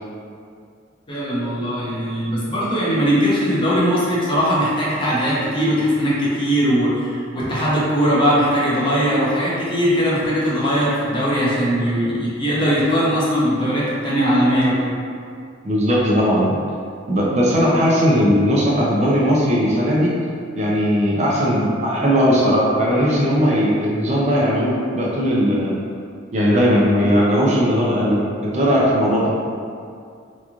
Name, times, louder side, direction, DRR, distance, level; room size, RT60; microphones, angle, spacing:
voice 1, 1.1-15.0, equal, 25° left, -8 dB, 0.6 m, -20 dB
voice 2, 15.6-16.6 17.1-20.1 20.6-25.8 26.3-29.3, equal, 35° right, -5 dB, 0.4 m, -18 dB
2.9 x 2.3 x 2.4 m, 2.3 s
head